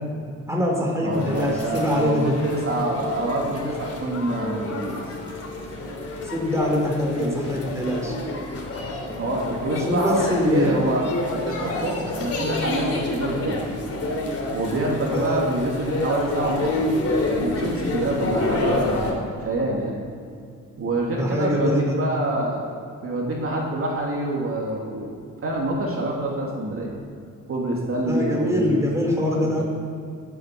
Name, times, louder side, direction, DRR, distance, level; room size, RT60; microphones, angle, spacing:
voice 1, 0.5-2.4 6.2-8.2 9.8-10.9 15.1-15.5 21.1-22.2 28.0-29.6, left 1 dB, 10° right, -1 dB, 4.1 m, -24 dB
voice 2, 1.0-5.0 7.2-7.4 9.2-13.7 14.5-16.8 17.4-19.9 20.8-22.7 23.0-25.1 25.4-26.9 27.5-28.9 29.2-29.6, right 1 dB, 45° right, -2 dB, 2.9 m, -26 dB
sound 1, 1.1-19.1, left 2 dB, 50° left, 3.1 m, -29 dB
12.0 x 8.8 x 8.5 m, 2.4 s
cardioid pair, 90°, 30 cm